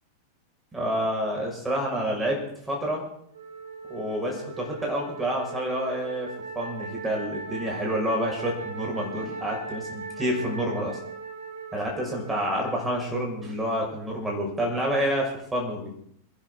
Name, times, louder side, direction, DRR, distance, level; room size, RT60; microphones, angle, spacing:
voice 1, 0.7-2.4 2.7-3.0 3.9-6.3 6.5-11.0 11.7-15.9, equal, 10° right, -1 dB, 6.0 m, -28 dB
Wind instrument woodwind instrument, 3.3-13.7, right 4 dB, 70° right, 1.9 m, -39 dB
28.0 x 11.0 x 3.9 m, 0.68 s
figure-of-eight pair, 90°, 0 cm